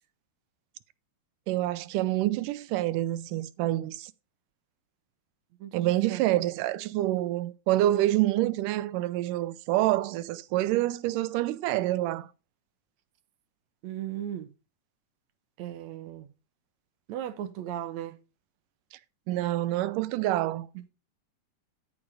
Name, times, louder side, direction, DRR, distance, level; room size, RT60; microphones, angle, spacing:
voice 1, 1.5-4.1 5.7-12.3 19.3-20.7, right 15 dB, 85° right, 2.2 m, -27 dB
voice 2, 5.6-6.2 13.8-14.5 15.6-16.3 17.1-18.2 20.8-20.9, right 11 dB, 70° right, 1.9 m, -37 dB
13.0 x 5.3 x 4.9 m
omnidirectional pair, 3.7 m